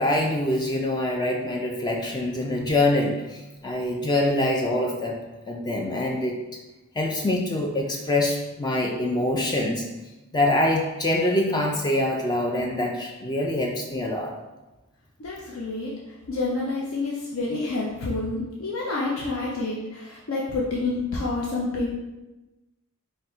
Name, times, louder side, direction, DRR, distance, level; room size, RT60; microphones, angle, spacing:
voice 1, 0.0-5.2 5.5-6.4 7.0-9.8 10.3-14.3, left 1 dB, 20° left, 0 dB, 0.3 m, -25 dB
voice 2, 15.2-15.9 16.3-21.9, left 3 dB, 65° left, -4 dB, 0.6 m, -28 dB
3.9 x 2.2 x 4.3 m, 1.1 s
head